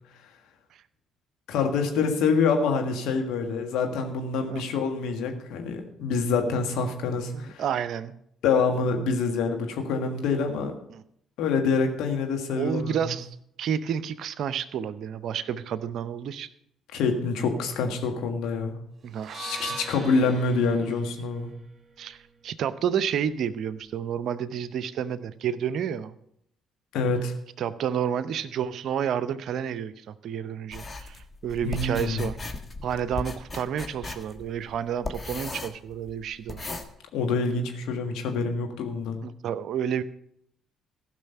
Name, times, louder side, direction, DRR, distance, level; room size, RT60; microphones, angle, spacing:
voice 1, 1.5-7.6 8.4-10.7 11.4-13.1 16.9-18.8 19.3-21.5 26.9-27.3 31.6-32.3 37.1-39.2, left 4 dB, 70° left, 4 dB, 1.6 m, -26 dB
voice 2, 7.3-8.2 10.9-11.0 12.5-13.3 13.6-16.5 19.0-19.4 20.8-21.0 22.0-26.2 27.6-32.4 32.8-36.6 39.2-40.0, right 8 dB, 60° right, 15 dB, 0.6 m, -30 dB
sound 1, 19.2-23.4, right 4 dB, 35° right, 1.5 m, -42 dB
sound 2, 30.7-36.9, left 3 dB, 30° left, 1.4 m, -37 dB
15.5 x 6.1 x 5.7 m, 0.73 s
hypercardioid pair, 50°, 0 cm